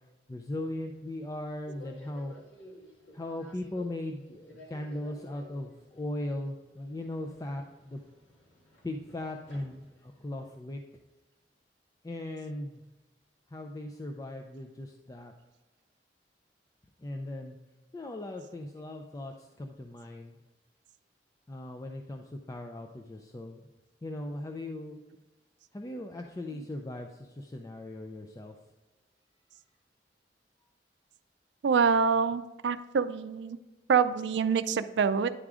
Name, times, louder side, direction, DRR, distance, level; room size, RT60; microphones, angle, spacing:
voice 1, 0.3-2.4 3.1-8.0 8.8-10.8 12.0-12.8 13.5-15.3 17.0-17.6 17.9-20.4 21.5-23.6 24.0-25.0 25.7-28.6, left 1 dB, 20° left, 3 dB, 0.4 m, -38 dB
Subway metro underground, 0.5-10.3, equal, 90° left, 1.8 m, -55 dB
voice 2, 31.6-33.6 33.9-35.3, right 6 dB, 85° right, 12 dB, 0.4 m, -26 dB
9.9 x 3.7 x 4.8 m, 1.1 s
head